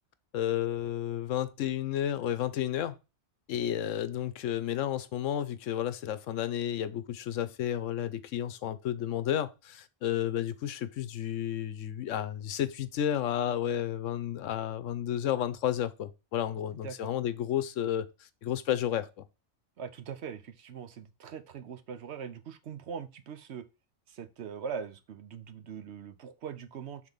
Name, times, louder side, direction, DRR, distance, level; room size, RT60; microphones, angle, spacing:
voice 1, 0.3-3.0 3.5-19.2, left 11 dB, 85° left, 1.0 m, -32 dB
voice 2, 19.8-23.6 24.1-27.0, right 7 dB, 65° right, 0.9 m, -41 dB
5.9 x 3.8 x 5.1 m
omnidirectional pair, 1.3 m